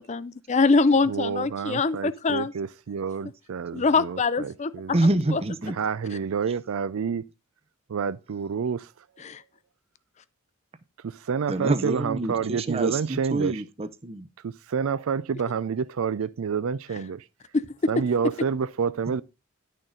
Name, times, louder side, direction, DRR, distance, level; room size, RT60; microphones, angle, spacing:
voice 1, 0.0-2.5 3.7-4.7 5.3-5.4 9.2-9.4 17.5-17.6, left 4 dB, 30° left, 0.4 m, -23 dB
voice 2, 1.1-4.9 5.8-7.2 7.9-8.9 11.0-13.6 14.4-17.2 17.9-19.2, right 6 dB, 75° right, 0.4 m, -28 dB
voice 3, 4.9-5.8 11.5-14.3 19.1-19.2, right 2 dB, 25° right, 0.6 m, -26 dB
10.5 x 6.5 x 3.8 m
head